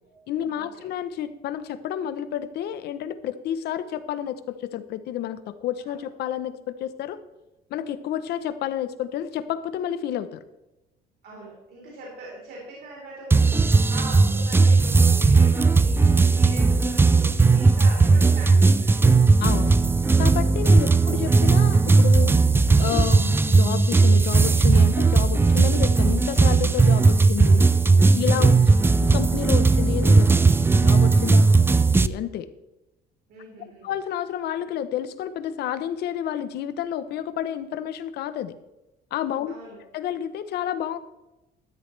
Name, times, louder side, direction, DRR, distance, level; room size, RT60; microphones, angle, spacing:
voice 1, 0.3-7.2 7.7-10.4 19.4-19.7 20.2-22.3 22.8-27.7 28.1-28.6 29.0-30.5 30.8-31.4 31.9-32.5 33.8-38.5 39.1-39.5 39.9-41.0, left 10 dB, 75° left, 12 dB, 0.9 m, -30 dB
voice 2, 11.2-19.0 25.2-25.4 28.5-28.9 31.4-31.6 33.3-33.9 39.5-39.8, right 2 dB, 70° right, -4 dB, 4.1 m, -42 dB
sound 1, 13.3-32.1, right 3 dB, 15° right, 0.4 m, -17 dB
13.0 x 11.5 x 3.4 m, 0.99 s
cardioid pair, 110°, 17 cm